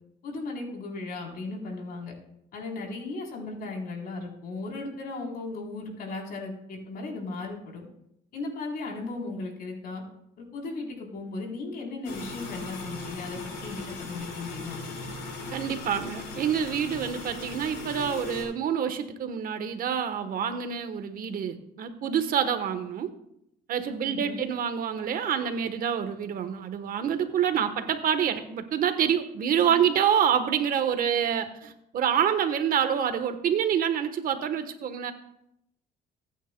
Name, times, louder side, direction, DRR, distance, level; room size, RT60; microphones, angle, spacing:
voice 1, 0.2-2.1 2.5-7.8 8.3-10.0 10.4-14.8 24.0-24.4 29.7-29.8, left 3 dB, 60° left, 0 dB, 3.6 m, -36 dB
sound 1, 12.0-18.4, left 3 dB, 85° left, 5.4 m, -38 dB
voice 2, 15.5-23.1 23.7-35.1, right 8 dB, 60° right, 9 dB, 1.1 m, -27 dB
22.0 x 9.2 x 2.2 m, 0.78 s
cardioid pair, 110°, 17 cm